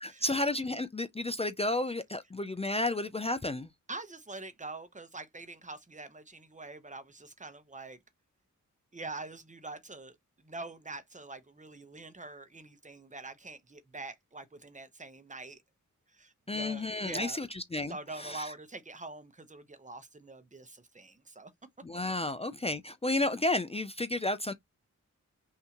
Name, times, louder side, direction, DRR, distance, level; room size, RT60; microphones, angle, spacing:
voice 1, 0.0-3.7 16.5-18.5 21.8-24.5, left 2 dB, 20° left, 0.4 m, -32 dB
voice 2, 3.9-8.0 8.9-15.6 16.1-17.4 17.9-21.5, right 2 dB, 25° right, 0.9 m, -45 dB
5.7 x 2.7 x 2.9 m
wide cardioid pair, 125°, 31 cm